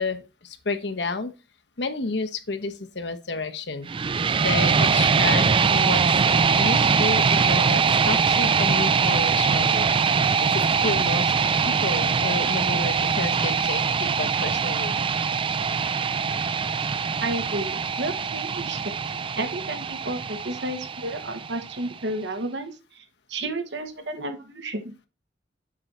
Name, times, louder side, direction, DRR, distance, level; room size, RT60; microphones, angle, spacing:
voice 1, 0.0-1.3 1.8-3.9 4.4-6.0 6.6-9.9 10.5-14.9, left 3 dB, 70° left, 8 dB, 1.1 m, -30 dB
sound 1, 3.8-21.9, right 5 dB, 30° right, 0.4 m, -22 dB
voice 2, 17.2-18.9 19.4-25.1, right 2 dB, 85° right, 7 dB, 1.4 m, -32 dB
7.6 x 5.5 x 4.4 m, 0.29 s
head